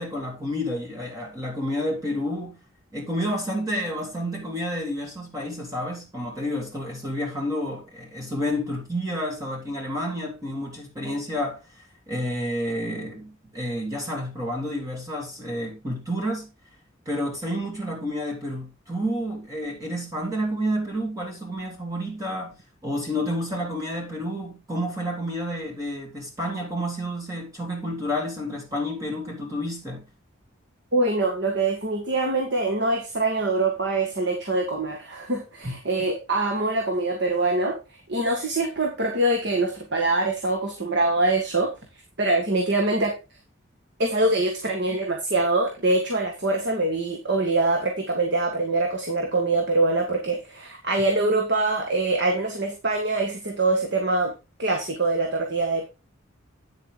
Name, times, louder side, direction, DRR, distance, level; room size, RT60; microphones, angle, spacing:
voice 1, 0.0-2.6 2.9-11.6 12.1-16.5 17.0-22.6 22.8-30.0 35.6-35.7, equal, 15° right, 3.3 m, -30 dB
voice 2, 30.9-37.8 38.1-41.7 42.2-43.1 44.0-54.3 54.6-55.9, right 2 dB, 60° right, 1.8 m, -24 dB
9.2 x 7.5 x 3.9 m
head